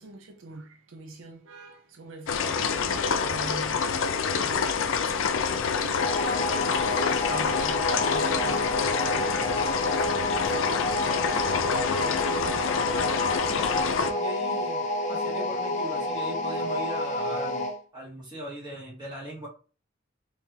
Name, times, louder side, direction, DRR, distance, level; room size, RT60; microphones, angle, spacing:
voice 1, 0.0-6.1 6.4-9.0, right 3 dB, 80° right, 0.5 m, -44 dB
sound 1, 2.3-14.1, left 6 dB, 85° left, 0.4 m, -27 dB
sound 2, 5.9-17.8, left 2 dB, 40° left, 0.6 m, -29 dB
voice 2, 10.0-17.6 17.9-19.5, right 1 dB, 25° right, 1.7 m, -40 dB
3.7 x 2.8 x 2.8 m
head